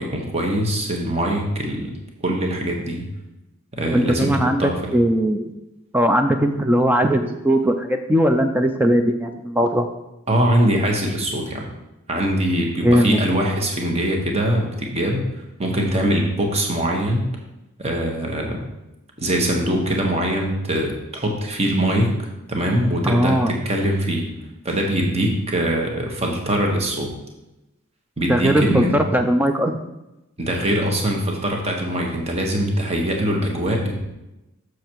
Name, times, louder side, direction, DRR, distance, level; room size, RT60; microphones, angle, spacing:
voice 1, 0.0-1.9 2.2-3.0 3.7-4.7 10.3-11.6 12.1-15.2 15.6-17.2 17.8-18.6 19.2-22.1 22.5-24.3 24.6-27.1 28.2-29.0 30.4-33.9, right 1 dB, 30° right, 1 dB, 1.2 m, -22 dB
voice 2, 3.9-5.5 5.9-9.9 12.8-13.2 23.0-23.5 28.2-29.8, equal, 10° right, 5 dB, 0.3 m, -19 dB
6.9 x 6.4 x 4.6 m, 0.94 s
head